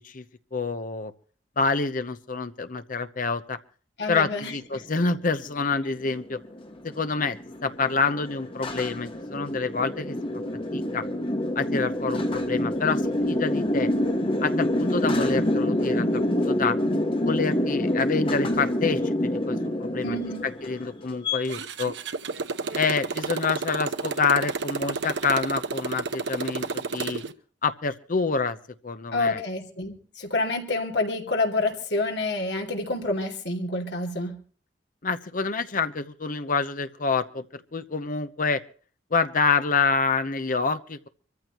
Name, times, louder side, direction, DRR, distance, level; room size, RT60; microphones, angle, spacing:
voice 1, 0.5-1.1 1.6-3.6 4.1-6.4 6.8-10.2 10.7-11.0 11.6-13.0 13.3-13.9 14.4-16.8 17.2-20.2 20.6-21.9 22.7-27.2 27.6-28.6 28.8-29.4 35.0-38.6 39.1-41.1, left 4 dB, 50° left, 10 dB, 0.9 m, -27 dB
voice 2, 4.0-4.9 20.0-20.4 29.1-34.4, left 2 dB, 65° left, 2 dB, 2.8 m, -28 dB
sound 1, 5.0-21.4, left 1 dB, 30° left, 1.8 m, -27 dB
Motorcycle, 21.4-27.3, right 4 dB, 70° right, 0.9 m, -31 dB
24.5 x 14.5 x 3.1 m, 0.41 s
head